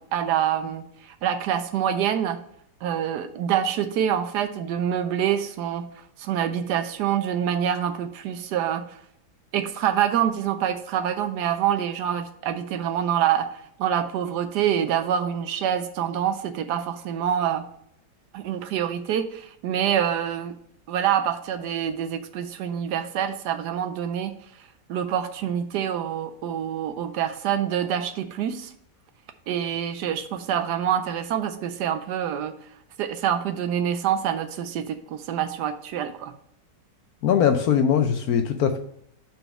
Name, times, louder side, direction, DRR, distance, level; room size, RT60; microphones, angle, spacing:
voice 1, 0.0-2.4 2.8-5.9 6.2-8.8 9.5-17.6 18.3-20.5 20.9-24.3 24.9-28.7 29.5-32.5 33.0-36.3, right 9 dB, 75° right, 10 dB, 1.1 m, -26 dB
voice 2, 37.2-38.8, left 8 dB, 70° left, 7 dB, 0.9 m, -21 dB
5.4 x 4.5 x 5.9 m, 0.72 s
omnidirectional pair, 1.9 m